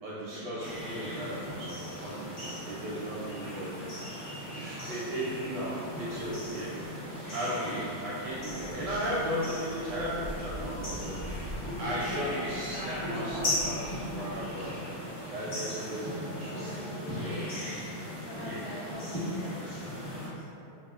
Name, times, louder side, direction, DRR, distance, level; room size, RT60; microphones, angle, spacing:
voice 1, 0.0-3.7 4.5-6.7 7.3-11.2 11.8-14.8 15.3-17.5 18.4-18.6, equal, 75° right, -8 dB, 1.0 m, -36 dB
sound 1, 0.6-20.3, left 1 dB, 40° left, 0.7 m, -38 dB
sound 2, 1.0-14.5, equal, 85° left, 0.7 m, -47 dB
voice 2, 6.3-7.0 8.4-8.8 11.8-13.5 14.3-14.9 18.2-20.8, left 1 dB, 70° left, -10 dB, 1.5 m, -44 dB
3.5 x 2.2 x 2.3 m, 2.7 s
omnidirectional pair, 2.2 m